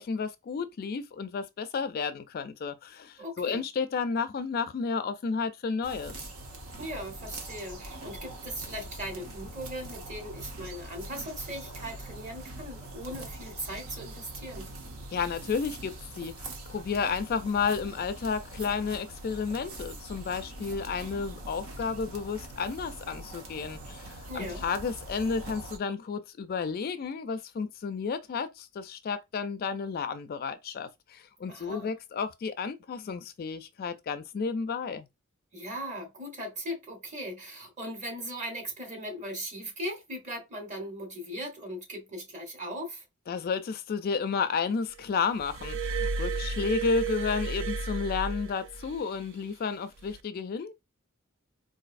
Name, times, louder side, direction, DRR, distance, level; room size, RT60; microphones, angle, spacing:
voice 1, 0.0-6.1 15.1-35.1 43.3-50.7, left 5 dB, 45° left, 0.3 m, -32 dB
voice 2, 3.2-3.6 6.8-14.7 24.3-24.6 31.5-31.9 35.5-43.0, equal, 35° right, 1.2 m, -39 dB
sound 1, 5.8-25.8, right 2 dB, 85° right, 0.9 m, -43 dB
Glass, 45.4-49.0 50.0-50.2, right 4 dB, 60° right, 0.4 m, -33 dB
4.0 x 2.6 x 2.4 m
head